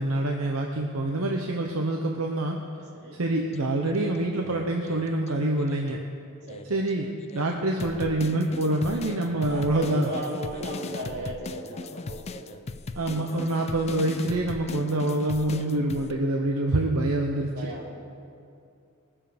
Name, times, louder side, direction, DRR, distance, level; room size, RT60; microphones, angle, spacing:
voice 1, 0.0-2.6 3.1-6.0 6.7-10.1 13.0-17.5, right 1 dB, 75° right, 1 dB, 0.9 m, -26 dB
sound 1, 3.5-6.0 6.5-16.1, left 3 dB, 30° left, 0.4 m, -39 dB
voice 2, 9.1-12.6 13.1-13.4 13.7-13.8 17.5-18.1, right 1 dB, 50° right, -3 dB, 2.4 m, -37 dB
21.0 x 7.3 x 5.1 m, 2.5 s
head